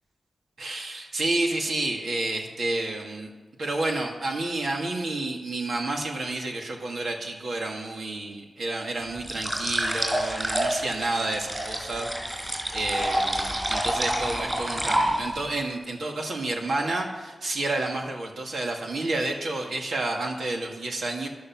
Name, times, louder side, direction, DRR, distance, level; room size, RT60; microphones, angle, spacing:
voice 1, 0.6-3.3 3.6-21.3, right 2 dB, 70° right, 1 dB, 2.1 m, -30 dB
sound 1, 9.2-15.5, right 1 dB, 15° right, 4.0 m, -28 dB
15.0 x 11.5 x 6.0 m, 1.3 s
wide cardioid pair, 125°, 0 cm